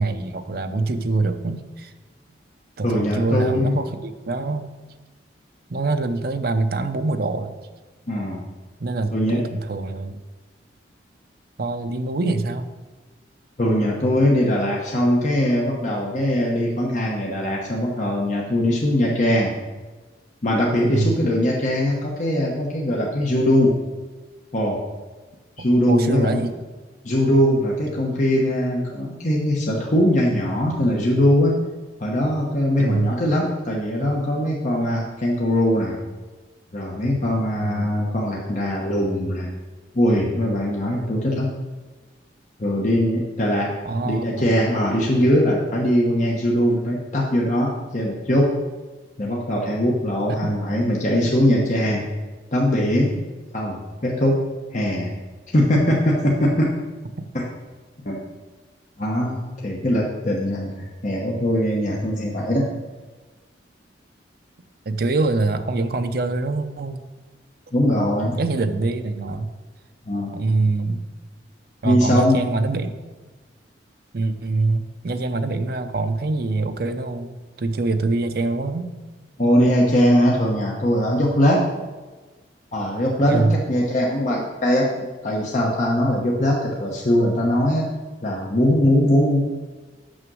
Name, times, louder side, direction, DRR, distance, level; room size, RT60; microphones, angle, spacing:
voice 1, 0.0-1.9 2.8-4.7 5.7-7.5 8.8-10.2 11.6-12.7 20.9-21.3 25.6-26.5 32.8-33.1 37.6-37.9 43.9-44.5 50.3-50.5 57.2-57.3 64.9-67.0 68.3-69.5 70.3-71.0 71.8-72.9 74.1-78.9 83.3-83.6, right 3 dB, 55° right, 8 dB, 0.6 m, -24 dB
voice 2, 2.8-3.8 8.1-8.4 9.1-9.4 13.6-19.5 20.4-23.7 24.5-24.8 25.6-26.5 27.0-31.5 32.0-36.0 36.7-39.5 39.9-41.5 42.6-43.7 44.0-48.5 49.2-52.0 52.5-53.1 53.5-54.4 54.7-55.1 55.5-56.7 57.3-57.5 58.0-58.2 59.0-62.7 67.7-68.4 70.1-70.4 71.8-72.5 79.4-81.7 82.7-84.9 85.2-87.9 88.2-89.4, equal, 40° left, -3 dB, 1.0 m, -21 dB
6.4 x 6.0 x 6.2 m, 1.3 s
head